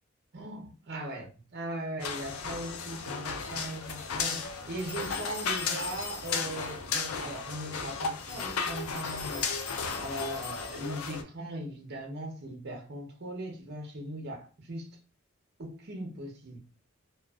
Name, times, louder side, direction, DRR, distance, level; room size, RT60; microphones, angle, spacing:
voice 1, 0.3-15.0 15.6-16.6, right 1 dB, 50° right, 0.7 m, -39 dB
sound 1, 2.0-11.2, left 5 dB, 85° left, 0.4 m, -35 dB
sound 2, 4.8-6.7 8.2-11.1, left 5 dB, 50° left, 0.8 m, -44 dB
2.5 x 2.5 x 2.3 m
head